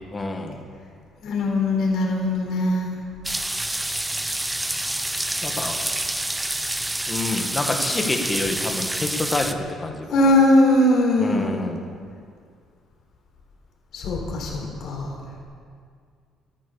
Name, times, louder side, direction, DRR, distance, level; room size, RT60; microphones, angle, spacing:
voice 1, 0.1-0.6 5.4-5.8 7.1-10.1 11.2-11.8, left 2 dB, 20° left, 3 dB, 1.7 m, -27 dB
voice 2, 1.2-2.9 10.1-11.6 13.9-15.2, left 1 dB, 65° left, -1 dB, 4.3 m, -20 dB
sound 1, 3.2-9.5, right 1 dB, 10° right, 0.7 m, -27 dB
14.0 x 13.5 x 7.0 m, 2.2 s
cardioid pair, 130°, 0 cm